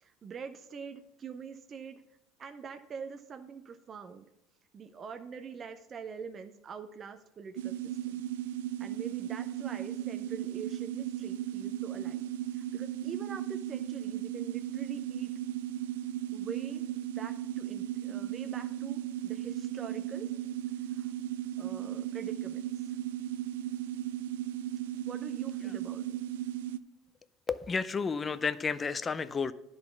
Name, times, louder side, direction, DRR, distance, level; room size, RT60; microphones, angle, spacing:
voice 1, 0.0-2.0 2.4-4.3 4.7-8.2 8.8-12.3 12.5-15.3 16.3-16.8 17.2-20.3 20.9-21.1 21.6-22.9 25.1-26.2, right 6 dB, 35° right, 7 dB, 0.6 m, -44 dB
sound 1, 7.6-26.8, right 12 dB, 85° right, 0.3 m, -36 dB
voice 2, 27.5-29.5, left 5 dB, 25° left, 15 dB, 0.4 m, -31 dB
10.5 x 3.9 x 5.9 m, 0.89 s
supercardioid pair, 90°, 0 cm